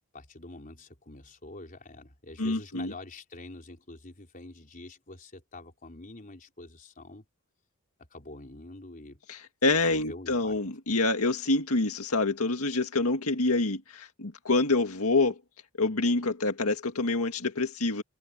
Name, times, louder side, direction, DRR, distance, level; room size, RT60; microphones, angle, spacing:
voice 1, 0.1-7.3 8.1-9.2 9.7-10.6, left 2 dB, 40° left, 4.3 m, -46 dB
voice 2, 2.4-2.9 9.3-15.4 15.8-18.0, left 3 dB, 85° left, 1.9 m, -27 dB
head